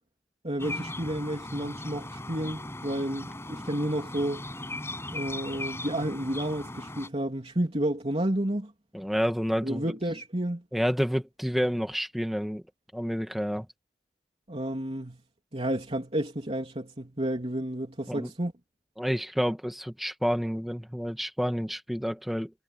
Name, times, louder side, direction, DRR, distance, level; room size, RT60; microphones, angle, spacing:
voice 1, 0.4-4.4 5.1-8.7 9.6-10.6 14.5-15.2 15.5-18.5, right 1 dB, 35° right, 3.2 m, -31 dB
sound 1, 0.6-7.1, left 2 dB, 15° left, 6.4 m, -38 dB
voice 2, 8.9-9.8 10.7-12.6 12.9-13.7 18.1-18.3 19.0-22.5, equal, ahead, 1.8 m, -29 dB
head